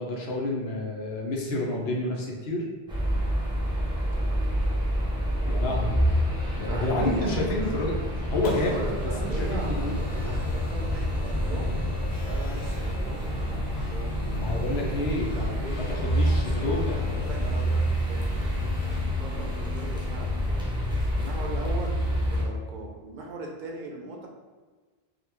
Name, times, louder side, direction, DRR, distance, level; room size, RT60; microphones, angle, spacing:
voice 1, 0.0-2.6 5.5-6.0 6.5-7.9 8.3-8.8 9.3-10.0 14.4-15.3 15.8-17.0, left 1 dB, 85° left, -2 dB, 1.0 m, -29 dB
sound 1, 2.9-22.4, equal, 5° right, 0.4 m, -28 dB
voice 2, 4.1-4.6 6.7-8.1 8.6-11.7 12.2-14.4 14.7-15.8 16.1-18.6 18.9-20.8 21.1-22.0 22.3-24.3, right 2 dB, 55° right, 0 dB, 0.6 m, -39 dB
sound 2, 8.2-19.0, left 5 dB, 50° left, 0.7 m, -43 dB
3.6 x 2.3 x 3.0 m, 1.4 s
omnidirectional pair, 1.1 m